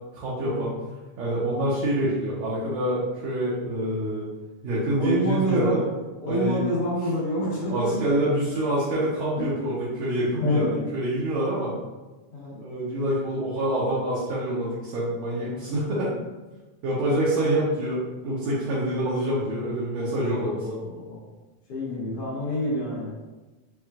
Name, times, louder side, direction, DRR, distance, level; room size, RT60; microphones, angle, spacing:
voice 1, 0.1-0.7 1.2-4.3 4.6-5.8 6.3-6.6 7.7-11.8 12.6-16.1 16.8-20.5, right 1 dB, 75° right, -8 dB, 1.9 m, -26 dB
voice 2, 5.0-5.8 6.2-8.2 9.5-9.6 10.4-10.8 12.3-12.6 15.4-15.6 18.7-18.9 20.2-21.2 21.7-23.1, equal, 60° left, -11 dB, 1.8 m, -28 dB
5.7 x 2.3 x 2.4 m, 1.2 s
omnidirectional pair, 3.4 m